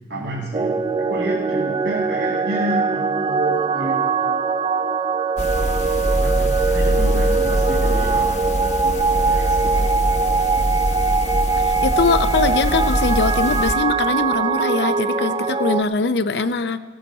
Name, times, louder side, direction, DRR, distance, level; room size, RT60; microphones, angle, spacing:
voice 1, 0.1-4.0 4.3-4.4 6.2-9.9, right 1 dB, 90° right, -5 dB, 2.1 m, -30 dB
sound 1, 0.5-15.8, right 4 dB, 25° right, 0.4 m, -22 dB
sound 2, 5.4-13.7, equal, 40° left, 0.9 m, -23 dB
voice 2, 11.6-16.8, left 4 dB, 70° left, 10 dB, 0.5 m, -22 dB
17.0 x 8.8 x 5.4 m, 1.4 s
head